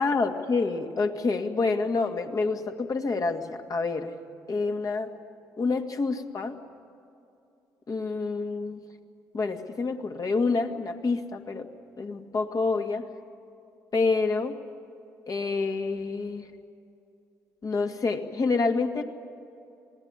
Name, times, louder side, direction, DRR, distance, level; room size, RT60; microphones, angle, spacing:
voice 1, 0.0-4.1 4.5-5.1 5.6-6.6 7.9-8.8 9.3-11.7 12.0-13.0 13.9-14.6 15.3-16.5 17.6-19.0, left 4 dB, 45° left, 5 dB, 2.3 m, -27 dB
27.0 x 18.5 x 9.9 m, 2.6 s
hypercardioid pair, 55°, 9 cm